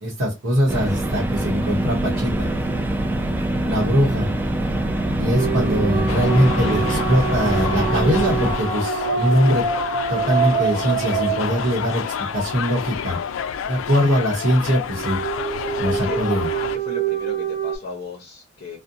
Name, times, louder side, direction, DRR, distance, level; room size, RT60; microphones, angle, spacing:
voice 1, 0.0-2.5 3.6-4.3 5.1-9.6 10.1-12.0 12.3-13.2 13.7-15.2 15.8-16.5, equal, 80° right, 0.8 m, -21 dB
sound 1, 0.7-8.5, right 1 dB, 10° right, 0.3 m, -24 dB
sound 2, 5.4-12.3 14.9-17.8, right 7 dB, 45° right, 0.7 m, -26 dB
sound 3, 6.1-16.8, left 7 dB, 85° left, 0.3 m, -29 dB
voice 2, 15.7-16.2 16.7-18.8, left 3 dB, 50° left, 0.7 m, -36 dB
2.6 x 2.1 x 2.6 m
head